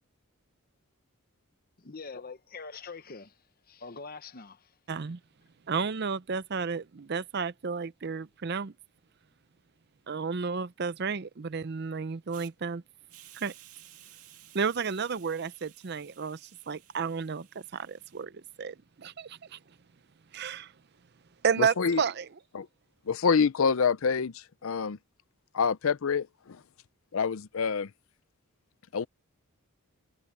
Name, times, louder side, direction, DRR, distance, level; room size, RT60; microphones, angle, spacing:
voice 1, 1.8-4.8, left 4 dB, 40° left, 1.0 m, -44 dB
voice 2, 4.9-5.2 5.7-8.7 10.1-12.8 13.3-13.5 14.5-16.4 16.7-17.5 17.7-19.6 20.3-20.7 21.4-22.3, right 5 dB, 50° right, 0.5 m, -32 dB
Hiss, 12.3-12.5 13.1-18.2, right 13 dB, 85° right, 2.0 m, -55 dB
voice 3, 21.6-22.0 22.5-22.7 23.1-25.0 25.5-26.6 27.1-27.9 28.9-29.1, left 5 dB, 70° left, 0.5 m, -27 dB
head